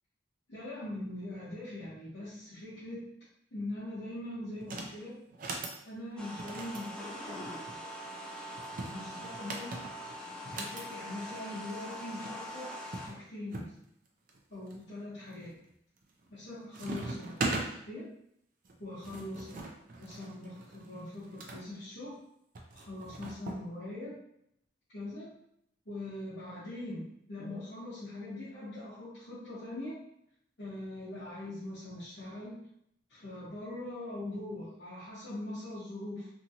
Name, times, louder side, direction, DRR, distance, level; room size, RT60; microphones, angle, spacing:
voice 1, 0.5-3.1 3.5-5.2 5.8-8.0 8.8-9.8 10.5-12.7 13.0-13.8 14.5-15.6 16.3-17.5 17.9-18.1 18.8-19.7 20.0-22.2 22.7-24.1 24.9-25.3 25.8-30.0 30.6-32.6 33.1-36.3, left 1 dB, 80° left, -11 dB, 1.0 m, -42 dB
sound 1, 4.6-4.9 5.3-5.8 6.4-7.8 8.6-10.9 11.9-12.0 12.2-12.3 12.9-13.7 14.3-14.8 15.3-15.7 16.0-16.5 16.7-17.7 18.7-21.6 22.6-23.6, right 3 dB, 50° right, 0.4 m, -40 dB
sound 2, 6.2-13.1, equal, 5° left, 0.4 m, -43 dB
2.9 x 2.5 x 2.7 m, 0.74 s
head